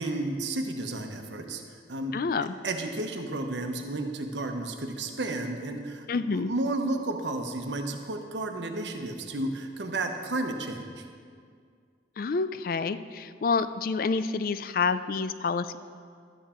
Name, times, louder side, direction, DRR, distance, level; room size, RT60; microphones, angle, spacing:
voice 1, 0.0-1.6 1.9-2.2 2.6-11.1, right 2 dB, 75° right, 4 dB, 1.0 m, -32 dB
voice 2, 2.1-2.6 6.1-6.5 12.2-15.8, left 4 dB, 50° left, 13 dB, 0.4 m, -28 dB
12.0 x 9.2 x 4.4 m, 2.1 s
head